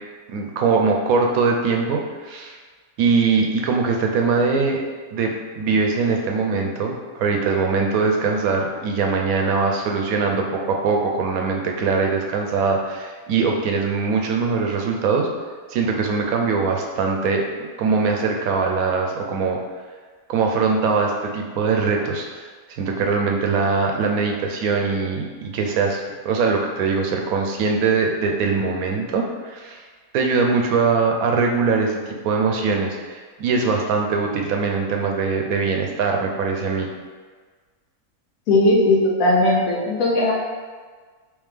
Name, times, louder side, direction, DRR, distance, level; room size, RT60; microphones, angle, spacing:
voice 1, 0.3-2.6 3.0-4.8 5.1-15.3 15.7-17.5 17.8-19.6 20.3-22.5 22.8-29.8 30.1-36.9, right 4 dB, 85° right, 2 dB, 1.1 m, -22 dB
voice 2, 38.5-40.3, left 1 dB, 75° left, -3 dB, 1.1 m, -18 dB
3.5 x 3.3 x 3.3 m, 1.5 s
omnidirectional pair, 1.4 m